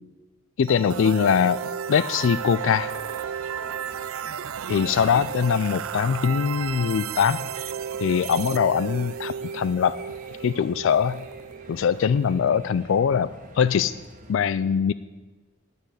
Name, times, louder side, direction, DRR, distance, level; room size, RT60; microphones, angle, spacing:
voice 1, 0.6-1.6 1.9-2.9 4.7-7.7 8.0-10.0 10.4-11.2 11.7-13.3 13.6-13.9 14.3-14.9, left 7 dB, 60° left, 16 dB, 0.3 m, -22 dB
sound 1, 0.6-12.5, right 8 dB, 70° right, 0.4 m, -34 dB
sound 2, 2.1-14.4, right 2 dB, 35° right, 1.6 m, -48 dB
10.0 x 9.8 x 8.2 m, 1.3 s
head